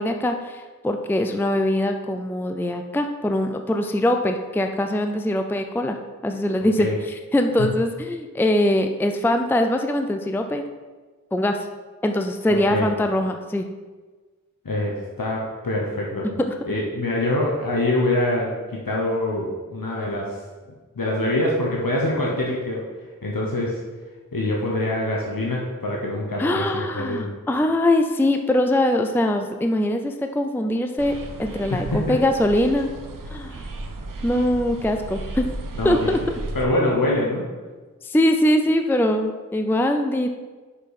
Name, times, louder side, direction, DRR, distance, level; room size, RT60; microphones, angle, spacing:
voice 1, 0.0-6.0 6.2-10.6 11.3-11.7 12.0-13.7 16.5-16.6 26.4-32.9 33.3-33.7 34.2-35.5 35.8-36.2 38.0-40.3, left 1 dB, 5° left, 6 dB, 0.5 m, -22 dB
voice 2, 12.5-12.9 14.6-16.2 16.7-20.3 21.0-22.8 23.2-23.8 24.3-27.3 31.7-32.2 35.8-36.0 36.5-37.5, left 1 dB, 85° left, -3 dB, 1.0 m, -24 dB
sound 1, 31.0-36.7, right 2 dB, 70° right, 0.7 m, -34 dB
6.1 x 5.6 x 4.9 m, 1.3 s
wide cardioid pair, 40°, 33 cm